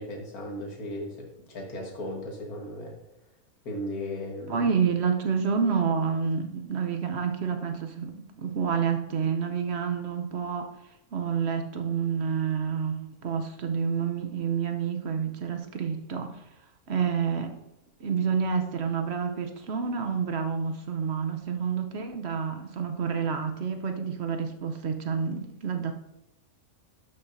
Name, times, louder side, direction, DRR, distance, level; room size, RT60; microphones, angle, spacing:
voice 1, 0.0-3.0 3.6-4.7, left 1 dB, 75° left, 2.0 m, -36 dB
voice 2, 4.5-10.7 11.1-16.4 16.9-17.6 18.0-25.9, right 6 dB, 55° right, 0.9 m, -28 dB
12.0 x 5.8 x 2.6 m
omnidirectional pair, 1.6 m